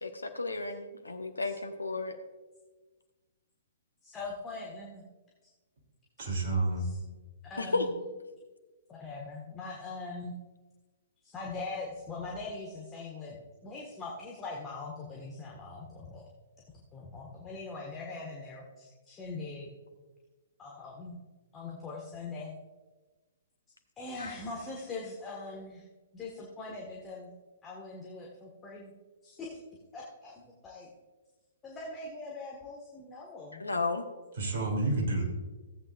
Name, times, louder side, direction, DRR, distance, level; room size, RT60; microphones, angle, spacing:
voice 1, 0.0-2.2 7.6-7.8 24.2-24.3 33.6-34.0, left 3 dB, 80° left, 7 dB, 1.1 m, -33 dB
voice 2, 4.0-5.0 6.2-6.5 6.8-7.2 7.4-7.9 8.9-10.4 11.2-16.2 16.9-19.7 20.6-21.2 21.5-22.5 24.0-25.8 26.1-27.3 27.6-28.9 29.2-29.6 29.9-30.9 31.6-33.6, left 3 dB, 15° left, -3 dB, 1.6 m, -42 dB
voice 3, 6.2-6.8 34.4-35.2, right 2 dB, 50° right, 1 dB, 2.9 m, -29 dB
16.0 x 8.6 x 2.5 m, 1.2 s
figure-of-eight pair, 115°, 0 cm